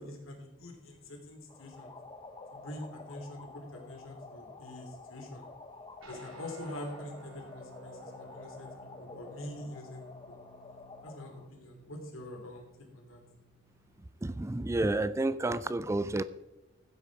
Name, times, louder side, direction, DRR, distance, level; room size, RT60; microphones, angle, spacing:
voice 1, 0.0-1.9 2.5-5.5 6.1-8.7 9.0-10.4 11.0-12.7 12.9-13.2, left 1 dB, 85° left, 2 dB, 3.0 m, -45 dB
sound 1, 1.5-11.5, left 3 dB, 25° left, 1.0 m, -49 dB
sound 2, 6.0-14.9, right 1 dB, 85° right, 3.1 m, -56 dB
voice 2, 14.2-16.2, right 2 dB, 15° right, 15 dB, 0.3 m, -30 dB
15.0 x 8.4 x 4.8 m, 1.1 s
head